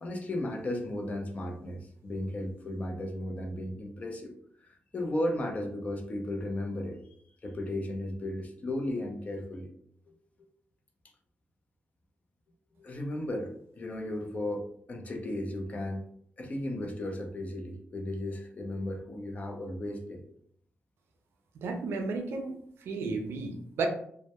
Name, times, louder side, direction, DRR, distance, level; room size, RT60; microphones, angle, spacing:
voice 1, 0.0-4.3 4.6-7.0 7.4-9.7 12.8-13.5 13.8-16.0 16.4-20.2 21.6-21.7, left 1 dB, 35° left, 2 dB, 0.4 m, -35 dB
voice 2, 21.5-23.9, right 3 dB, 90° right, 4 dB, 0.4 m, -33 dB
2.1 x 2.1 x 2.8 m, 0.66 s
wide cardioid pair, 120°, 4 cm